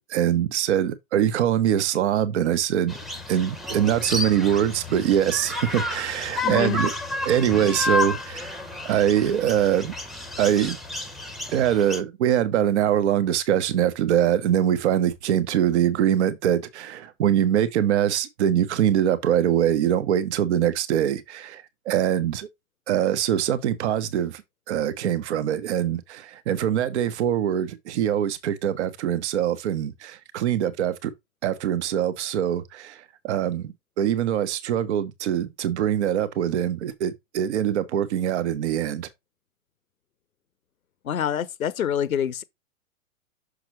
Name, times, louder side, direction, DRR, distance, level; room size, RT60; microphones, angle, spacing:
voice 1, 0.0-3.0 3.3-6.9 7.2-8.6 8.8-9.9 10.4-10.8 11.5-22.5 22.9-24.4 24.7-31.1 31.4-39.1, right 10 dB, 55° right, 1.1 m, -23 dB
sound 1, 2.9-12.0, left 2 dB, ahead, 0.9 m, -31 dB
voice 2, 6.4-6.8 41.0-42.4, left 9 dB, 80° left, 0.8 m, -26 dB
6.4 x 5.9 x 3.2 m
figure-of-eight pair, 115°, 41 cm